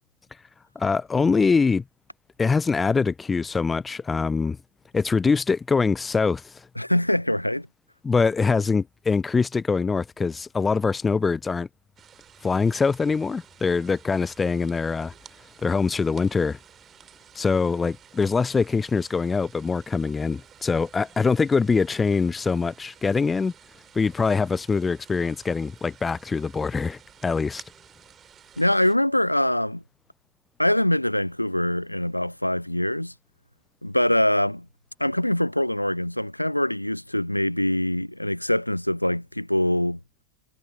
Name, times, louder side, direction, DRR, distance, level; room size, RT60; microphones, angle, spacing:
voice 1, 0.8-1.8 2.4-4.6 4.9-6.5 8.0-11.7 12.4-15.1 15.6-16.6 17.3-23.5 23.9-27.6, left 4 dB, 15° left, 0.5 m, -23 dB
voice 2, 6.8-7.7 28.6-29.8 30.6-33.1 33.8-34.7 35.0-40.0, left 1 dB, 90° left, 0.6 m, -23 dB
sound 1, 12.0-29.0, right 9 dB, 25° right, 3.3 m, -52 dB
figure-of-eight pair, 90°, 0 cm